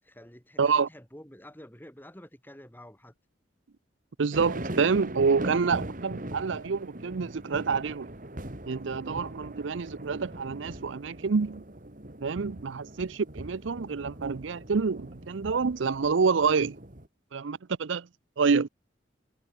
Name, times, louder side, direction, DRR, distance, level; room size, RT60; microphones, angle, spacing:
voice 1, 0.0-3.1, equal, 10° left, 6.0 m, -49 dB
voice 2, 0.6-0.9 4.2-8.1 8.7-11.6 12.2-16.8 17.3-18.1 18.4-18.7, right 5 dB, 80° right, 0.6 m, -27 dB
sound 1, 4.3-17.1, right 1 dB, 45° right, 2.4 m, -40 dB
head